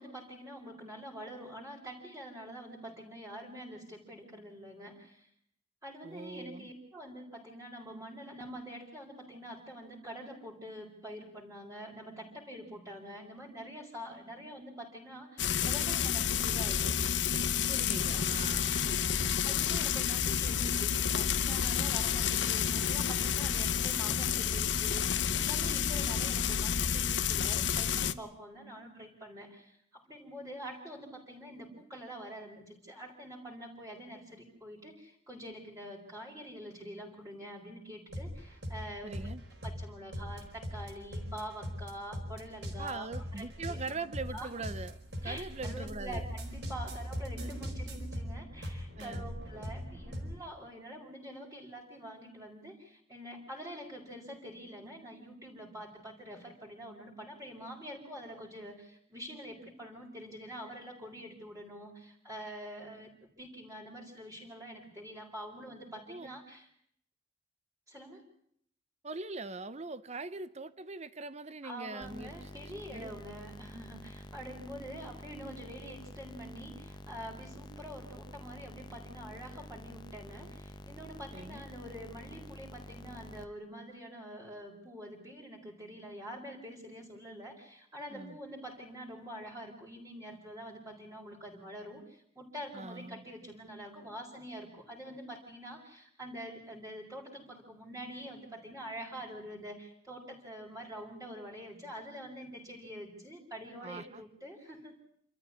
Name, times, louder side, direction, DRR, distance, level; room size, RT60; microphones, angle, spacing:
voice 1, 0.0-5.3 5.8-17.0 18.8-39.3 39.6-43.1 43.3-44.0 44.3-44.5 45.2-66.7 67.9-68.2 71.6-105.0, equal, 15° right, 4.4 m, -46 dB
voice 2, 6.0-6.7 17.7-19.0 39.0-39.4 42.8-46.2 47.4-47.5 49.0-49.3 66.1-66.3 69.0-72.3 72.6-73.1 81.3-81.7 88.1-88.4 92.7-93.2 103.8-104.2, right 3 dB, 35° right, 0.9 m, -42 dB
Frying (food), 15.4-28.1, left 8 dB, 70° left, 1.0 m, -30 dB
sound 1, 38.1-50.4, equal, 65° right, 4.8 m, -40 dB
sound 2, 72.0-83.5, left 1 dB, 25° left, 1.1 m, -48 dB
28.0 x 13.5 x 9.8 m
head